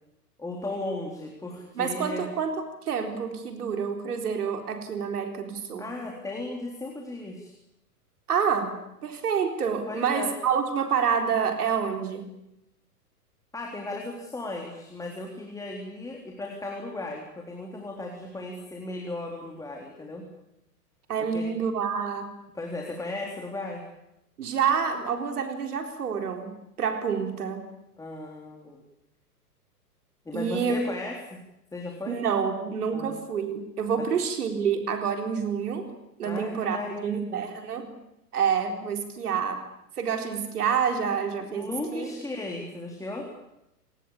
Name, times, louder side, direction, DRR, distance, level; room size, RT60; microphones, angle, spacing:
voice 1, 0.4-2.3 5.8-7.5 9.9-10.3 13.5-20.2 21.3-21.5 22.6-23.9 28.0-28.8 30.3-31.4 31.7-32.2 32.9-33.2 34.0-34.1 36.2-37.4 41.5-43.3, left 2 dB, 5° left, 1 dB, 3.8 m, -36 dB
voice 2, 1.8-5.9 8.3-8.7 9.0-12.3 21.1-22.3 24.4-27.7 30.3-30.8 32.1-35.9 36.2-37.9 38.3-39.6 40.0-42.1, right 6 dB, 70° right, 5 dB, 4.2 m, -28 dB
29.0 x 19.0 x 8.7 m, 0.85 s
hypercardioid pair, 115°, 47 cm